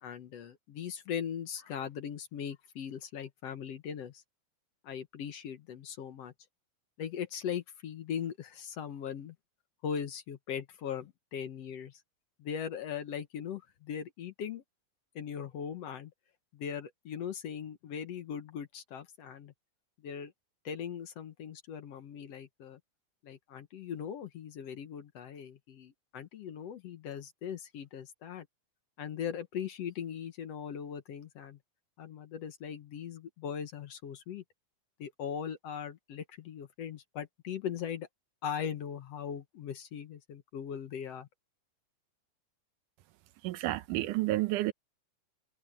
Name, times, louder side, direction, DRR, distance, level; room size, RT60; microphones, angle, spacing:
voice 1, 0.0-4.2 4.8-6.3 7.0-9.4 9.8-12.0 12.4-14.6 15.2-16.1 16.5-19.5 20.0-20.3 20.6-22.8 23.2-28.5 29.0-31.6 32.0-34.4 35.0-38.1 38.4-41.3, left 8 dB, 60° left, 2.0 m, -39 dB
voice 2, 43.4-44.7, right 17 dB, 85° right, 2.3 m, -30 dB
omnidirectional pair, 3.6 m